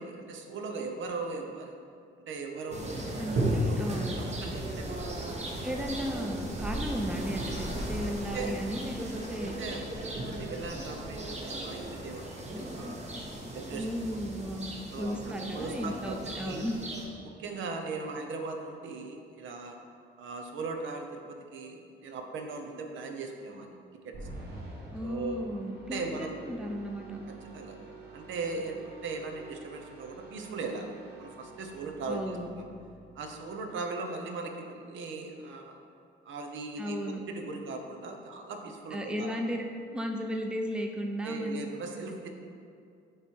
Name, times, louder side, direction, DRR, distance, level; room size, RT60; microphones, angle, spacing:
voice 1, 0.0-1.8 2.3-5.4 8.3-8.6 9.6-13.0 13.5-14.4 14.9-16.6 17.2-19.8 20.2-23.7 24.0-24.2 25.0-25.6 25.9-26.3 27.5-27.8 28.1-30.9 31.2-32.7 33.1-35.8 36.3-39.4 41.2-42.3, right 3 dB, 75° right, 4 dB, 0.7 m, -39 dB
sound 1, 2.7-17.0, right 1 dB, 35° right, 1.0 m, -35 dB
voice 2, 3.2-4.1 5.6-9.6 13.7-16.7 24.9-27.2 32.1-32.5 36.8-37.2 38.9-39.6 39.9-41.7, equal, 5° right, 2 dB, 0.6 m, -35 dB
sound 2, 24.1-33.5, right 3 dB, 55° right, 1.2 m, -48 dB
7.6 x 3.0 x 4.5 m, 2.4 s
cardioid pair, 90°, 20 cm